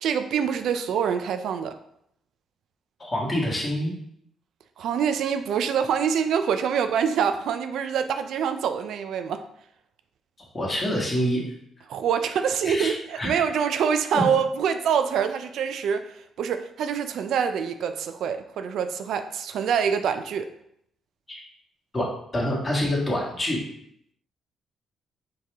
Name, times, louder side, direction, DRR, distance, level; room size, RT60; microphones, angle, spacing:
voice 1, 0.0-1.8 4.8-9.4 11.9-20.5, right 7 dB, 75° right, 9 dB, 0.3 m, -25 dB
voice 2, 3.0-3.9 10.5-11.4 12.6-12.9 13.2-13.3 21.3-21.4 21.9-23.6, equal, 25° left, -3 dB, 1.6 m, -26 dB
4.5 x 3.3 x 3.4 m, 0.73 s
cardioid pair, 90°, 0 cm